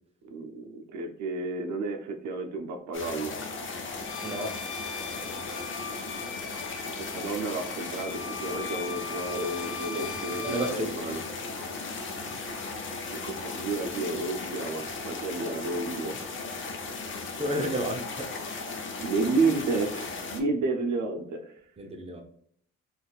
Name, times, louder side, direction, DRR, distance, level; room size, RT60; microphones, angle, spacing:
voice 1, 0.3-3.3 6.8-11.2 13.1-16.2 19.0-21.5, right 3 dB, 70° right, 4 dB, 0.7 m, -31 dB
sound 1, 2.9-20.4, left 3 dB, 40° left, 0.7 m, -37 dB
Bowed string instrument, 4.0-10.8, left 6 dB, 90° left, 0.8 m, -40 dB
voice 2, 4.2-4.6 9.9-11.2 17.4-18.3 21.8-22.2, right 1 dB, 20° right, 3 dB, 0.7 m, -32 dB
4.0 x 2.5 x 2.4 m, 0.64 s
cardioid pair, 90°, 30 cm